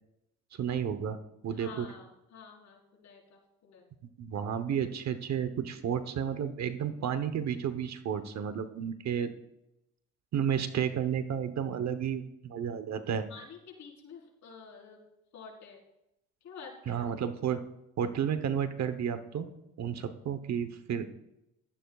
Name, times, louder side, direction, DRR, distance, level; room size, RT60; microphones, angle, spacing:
voice 1, 0.6-1.2 1.4-1.9 4.2-9.3 10.3-13.3 16.9-17.6 18.0-19.5 19.8-21.1, right 8 dB, 60° right, 10 dB, 1.0 m, -32 dB
voice 2, 1.5-3.9 13.3-15.1 15.3-15.8 16.4-17.1, left 5 dB, 70° left, -3 dB, 4.4 m, -49 dB
16.0 x 12.5 x 2.4 m, 0.88 s
cardioid pair, 90°, 30 cm